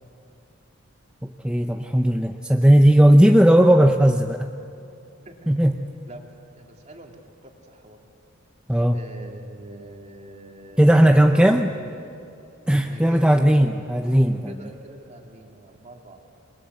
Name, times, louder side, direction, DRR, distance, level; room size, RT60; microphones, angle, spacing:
voice 1, 1.2-4.5 5.5-5.9 8.7-9.0 10.8-11.7 12.7-14.7, equal, 5° right, 4 dB, 0.6 m, -17 dB
voice 2, 5.2-5.6 6.1-6.3 6.5-8.0 8.9-12.0 12.8-14.0 14.5-16.2, right 1 dB, 35° right, 1 dB, 2.9 m, -44 dB
27.5 x 21.0 x 8.2 m, 2.7 s
head